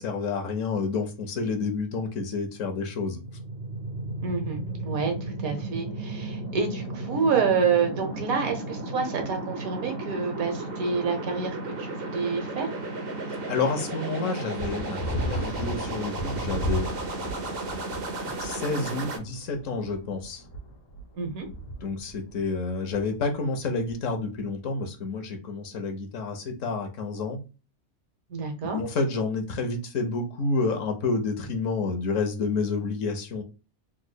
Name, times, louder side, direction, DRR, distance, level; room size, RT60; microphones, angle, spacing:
voice 1, 0.0-3.2 13.3-16.9 18.4-20.4 21.8-27.4 28.7-33.4, left 3 dB, 65° left, 1.1 m, -29 dB
sound 1, 2.7-19.2, right 2 dB, 50° right, 0.9 m, -34 dB
voice 2, 4.2-4.6 4.8-5.1 5.4-12.7 21.1-21.5 28.3-28.8, right 5 dB, 80° right, 1.4 m, -28 dB
sound 2, 14.6-24.5, right 1 dB, 85° left, 1.3 m, -36 dB
3.6 x 3.0 x 2.2 m
omnidirectional pair, 1.5 m